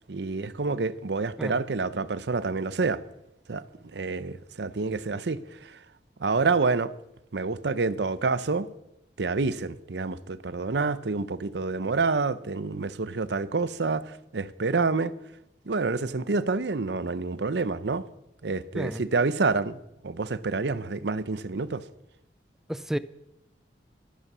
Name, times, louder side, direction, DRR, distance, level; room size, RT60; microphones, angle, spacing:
voice 1, 0.1-3.0 3.5-3.6 3.9-5.8 6.2-6.9 7.3-8.7 9.2-15.1 15.7-18.0 18.4-19.8 20.0-21.8, right 4 dB, 70° right, 0.7 m, -28 dB
voice 2, 22.7-23.0, equal, 5° right, 0.4 m, -31 dB
12.5 x 12.5 x 6.1 m
head